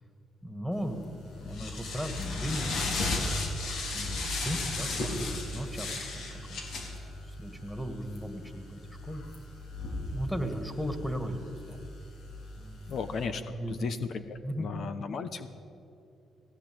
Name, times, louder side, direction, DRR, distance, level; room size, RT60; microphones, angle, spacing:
voice 1, 0.4-3.3 3.9-6.9 7.3-9.2 10.1-11.9 12.6-13.0 13.4-13.9 14.4-14.7, equal, 5° left, 7 dB, 2.3 m, -37 dB
sound 1, 0.8-13.3, left 2 dB, 75° left, 4.0 m, -36 dB
voice 2, 12.9-15.5, left 5 dB, 60° left, 10 dB, 1.1 m, -35 dB
18.0 x 16.5 x 8.9 m, 2.7 s
cardioid pair, 90°, 0 cm